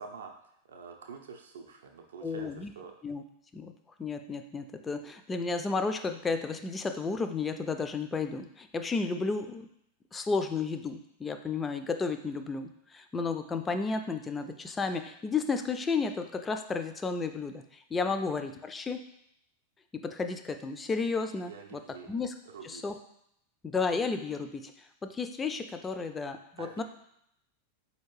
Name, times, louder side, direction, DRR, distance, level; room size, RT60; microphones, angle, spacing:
voice 1, 0.0-2.9 18.1-18.2 21.5-22.1 22.5-22.8 26.6-26.8, right 5 dB, 65° right, 3 dB, 0.4 m, -46 dB
voice 2, 2.2-2.7 3.0-3.2 3.5-3.7 4.0-9.7 10.1-19.0 19.9-21.8 22.1-22.3 22.6-22.9 23.6-26.8, left 4 dB, 15° left, 8 dB, 0.3 m, -32 dB
4.4 x 2.7 x 3.0 m, 0.73 s
figure-of-eight pair, 90°, 0 cm